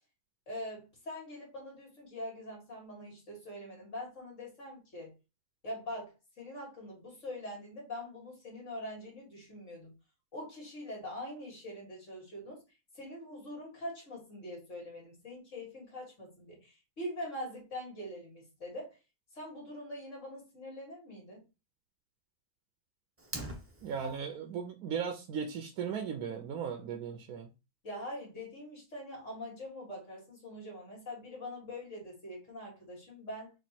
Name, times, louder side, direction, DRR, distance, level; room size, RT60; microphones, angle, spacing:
voice 1, 0.5-5.1 5.6-9.9 10.3-12.6 12.9-19.0 19.3-21.4 23.9-24.1 27.8-33.5, left 1 dB, 55° left, 2.4 m, -43 dB
Fire, 23.2-24.2, right 1 dB, 15° right, 0.5 m, -42 dB
voice 2, 23.8-27.5, right 7 dB, 75° right, 1.1 m, -37 dB
4.5 x 2.5 x 4.3 m
omnidirectional pair, 1.6 m